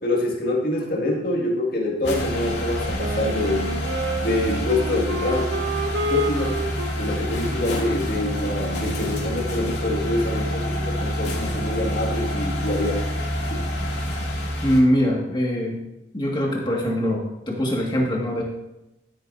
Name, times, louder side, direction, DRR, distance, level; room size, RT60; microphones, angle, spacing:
voice 1, 0.0-3.7 4.2-5.5 6.1-6.7 6.9-13.0 13.5-13.7, left 1 dB, 50° left, -1 dB, 2.1 m, -25 dB
sound 1, 2.0-14.8, equal, 65° left, 2.3 m, -27 dB
Wind instrument woodwind instrument, 3.0-9.6, right 1 dB, 85° right, 1.0 m, -31 dB
voice 2, 14.6-15.8 16.1-18.4, equal, 25° left, -2 dB, 1.9 m, -22 dB
13.5 x 8.8 x 2.7 m, 0.93 s
head